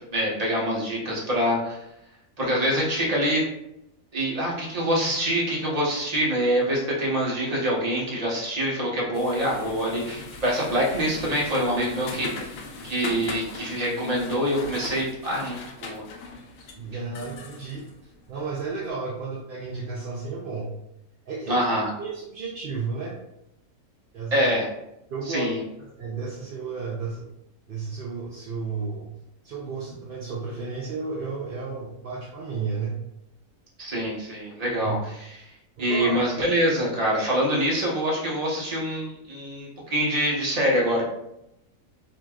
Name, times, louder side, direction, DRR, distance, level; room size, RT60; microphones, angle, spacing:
voice 1, 0.1-1.8 2.4-3.4 4.1-12.6 12.8-16.0 21.5-21.9 24.3-24.7 25.3-25.6 33.8-35.4 35.8-41.0, equal, 30° right, -4 dB, 1.0 m, -25 dB
sound 1, 9.1-18.7, left 3 dB, 80° left, 1.1 m, -40 dB
voice 2, 16.7-17.9 18.3-20.7 21.3-21.6 22.0-23.2 24.1-24.5 25.1-25.5 26.0-27.3 27.7-29.2 29.4-33.0 34.7-35.0 35.8-36.2, right 4 dB, 55° right, -4 dB, 0.6 m, -32 dB
4.7 x 2.9 x 2.3 m, 0.84 s
omnidirectional pair, 1.5 m